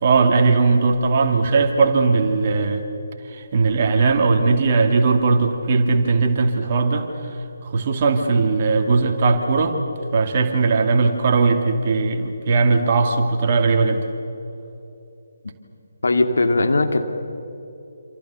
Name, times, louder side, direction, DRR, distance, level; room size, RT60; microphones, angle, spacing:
voice 1, 0.0-2.8 3.3-9.8 10.1-14.1, right 4 dB, 35° right, 4 dB, 2.6 m, -19 dB
voice 2, 16.0-17.0, left 2 dB, 60° left, 6 dB, 2.4 m, -18 dB
27.5 x 27.5 x 6.9 m, 2.8 s
figure-of-eight pair, 145°, 0 cm